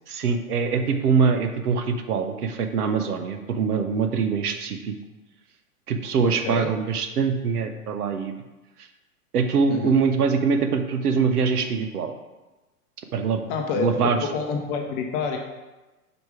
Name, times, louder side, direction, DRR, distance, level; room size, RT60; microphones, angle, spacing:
voice 1, 0.1-4.9 5.9-8.3 8.8-8.9 9.3-12.1 13.1-13.5 13.8-14.3, right 5 dB, 75° right, 7 dB, 0.9 m, -23 dB
voice 2, 13.5-15.4, left 5 dB, 35° left, 2 dB, 0.7 m, -28 dB
5.1 x 4.6 x 4.8 m, 1.1 s
hypercardioid pair, 105°, 46 cm